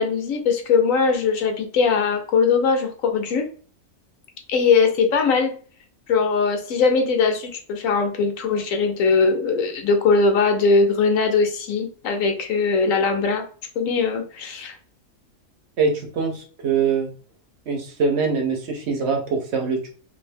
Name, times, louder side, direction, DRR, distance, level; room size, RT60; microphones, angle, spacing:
voice 1, 0.0-3.5 4.5-5.5 6.1-13.4 13.8-14.7, left 4 dB, 80° left, 5 dB, 1.1 m, -20 dB
voice 2, 15.8-17.1 17.7-19.9, right 5 dB, 60° right, 2 dB, 0.9 m, -23 dB
2.7 x 2.6 x 3.3 m, 0.42 s
omnidirectional pair, 1.4 m